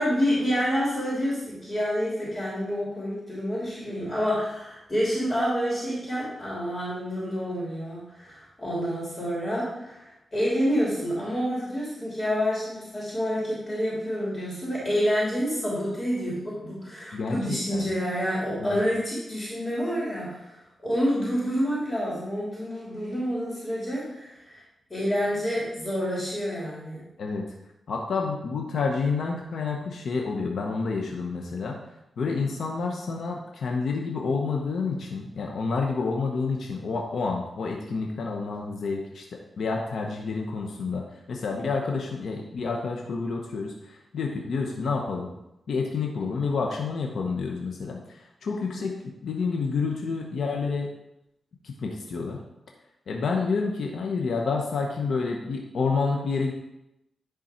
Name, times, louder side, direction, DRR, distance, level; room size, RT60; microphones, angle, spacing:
voice 1, 0.0-24.6 24.9-27.0 48.7-48.8, equal, 30° left, -6 dB, 2.8 m, -28 dB
voice 2, 27.2-27.5 27.9-31.8 32.2-39.2 39.6-45.3 45.7-49.0 49.2-50.9 51.6-52.4 53.1-56.5, left 4 dB, 75° left, 1 dB, 0.9 m, -29 dB
10.5 x 3.8 x 4.3 m, 0.89 s
cardioid pair, 85°, 0 cm